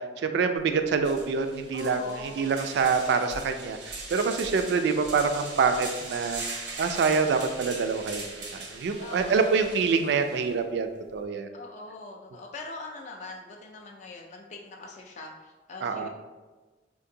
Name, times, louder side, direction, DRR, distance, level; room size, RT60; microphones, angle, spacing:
voice 1, 0.0-8.2 8.7-11.5 15.8-16.1, right 5 dB, 70° right, 7 dB, 0.3 m, -26 dB
sound 1, 0.6-0.7 1.0-10.6, right 3 dB, 90° right, 0.7 m, -40 dB
voice 2, 1.7-2.5 9.0-9.7 11.5-16.1, left 2 dB, 40° left, 0 dB, 0.3 m, -42 dB
3.8 x 2.5 x 2.7 m, 1.2 s
head